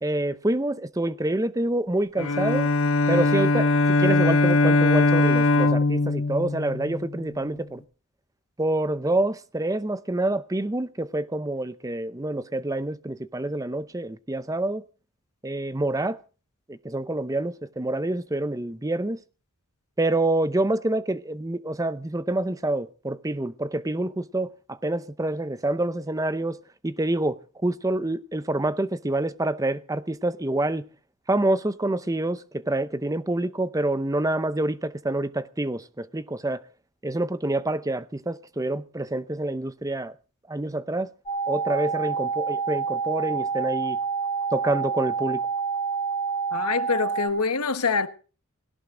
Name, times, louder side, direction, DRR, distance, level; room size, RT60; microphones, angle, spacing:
voice 1, 0.0-2.7 3.1-7.8 8.6-14.8 15.4-16.2 16.7-19.2 20.0-26.6 26.8-30.8 31.3-36.6 37.0-40.1 40.5-41.1 41.5-44.0 44.5-45.4, right 1 dB, 15° right, 0.7 m, -27 dB
Bowed string instrument, 2.2-7.4, left 2 dB, 65° left, 1.3 m, -21 dB
sound 1, 41.3-47.3, right 5 dB, 20° left, 3.4 m, -28 dB
voice 2, 46.5-48.1, left 5 dB, 90° left, 1.3 m, -25 dB
17.5 x 17.5 x 3.8 m
head